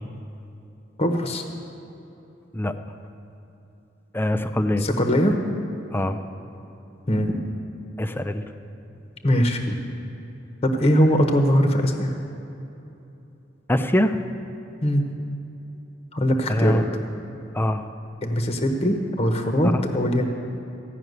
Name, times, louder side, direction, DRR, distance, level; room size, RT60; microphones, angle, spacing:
voice 1, 1.0-1.4 4.8-5.4 7.1-7.4 9.2-9.8 10.6-12.1 14.8-15.0 16.1-17.0 18.2-20.2, equal, 30° left, 4 dB, 0.9 m, -21 dB
voice 2, 4.1-4.8 5.9-6.2 8.0-8.4 13.7-14.2 16.5-16.8 17.5-17.8 19.6-19.8, left 1 dB, 10° left, 9 dB, 0.5 m, -23 dB
15.0 x 5.9 x 9.3 m, 2.9 s
head